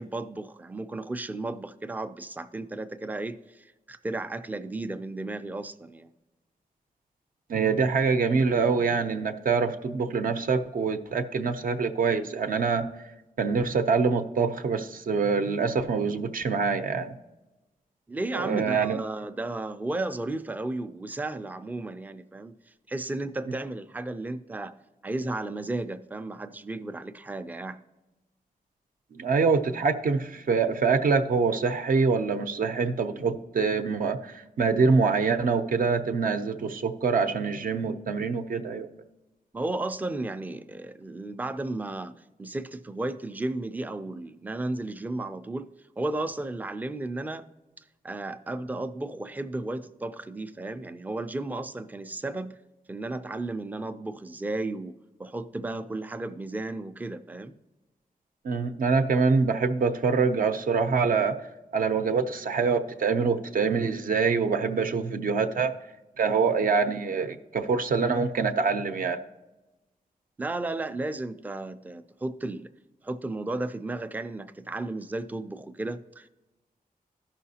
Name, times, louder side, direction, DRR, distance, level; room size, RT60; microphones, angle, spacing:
voice 1, 0.0-6.1 18.1-22.5 22.9-24.8 25.0-27.8 39.5-42.1 42.4-45.7 46.0-47.5 48.0-52.6 52.9-57.5 70.4-72.7 73.0-76.3, right 2 dB, 10° right, 0.3 m, -34 dB
voice 2, 7.5-12.9 13.4-17.1 18.3-19.0 29.1-38.9 58.4-61.4 61.7-65.8 66.2-69.2, right 5 dB, 65° right, 0.6 m, -25 dB
14.0 x 5.7 x 2.8 m
wide cardioid pair, 180°, 15 cm